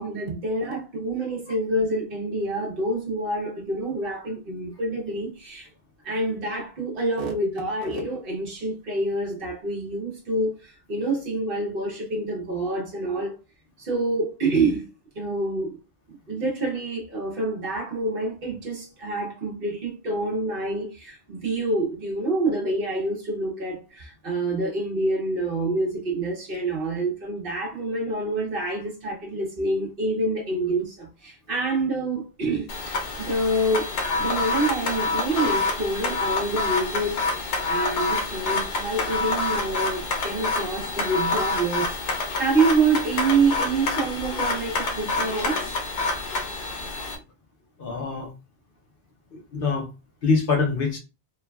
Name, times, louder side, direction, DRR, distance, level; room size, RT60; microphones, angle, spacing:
voice 1, 0.0-5.7 6.0-13.3 13.8-14.8 15.1-15.8 16.3-45.8, right 2 dB, 55° right, 1.0 m, -27 dB
sound 1, 32.7-47.2, left 3 dB, 90° left, 1.0 m, -27 dB
voice 2, 47.8-48.3 49.3-49.9 50.2-51.0, left 4 dB, 60° left, 0.8 m, -24 dB
3.1 x 2.1 x 2.2 m
omnidirectional pair, 1.2 m